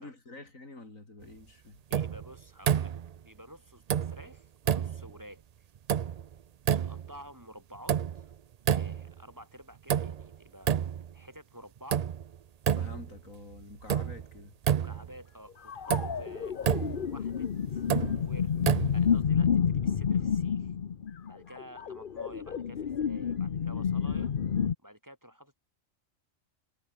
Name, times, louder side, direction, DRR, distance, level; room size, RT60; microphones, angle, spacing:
voice 1, 0.0-1.8 12.7-14.5, left 2 dB, 90° left, 5.1 m, -48 dB
voice 2, 1.9-3.0 3.2-5.4 6.7-8.3 8.7-10.7 11.1-12.1 14.7-16.6 17.1-17.8 18.2-18.5 18.9-20.7 21.2-24.3 24.8-25.6, equal, 15° right, 6.8 m, -50 dB
sound 1, 1.9-2.3 2.7-3.2 3.9-4.3 4.6-5.1 5.9-6.3 6.7-7.1 7.9-8.3 8.7-9.2 9.9-10.3 10.7-11.1 11.9-12.3 12.7-13.2 13.9-14.3 14.6-15.2 15.9-16.2 16.6-17.1 17.9-18.2 18.6-19.2, right 9 dB, 80° right, 0.3 m, -29 dB
sound 2, 15.7-24.7, left 7 dB, 45° left, 0.9 m, -30 dB
omnidirectional pair, 1.4 m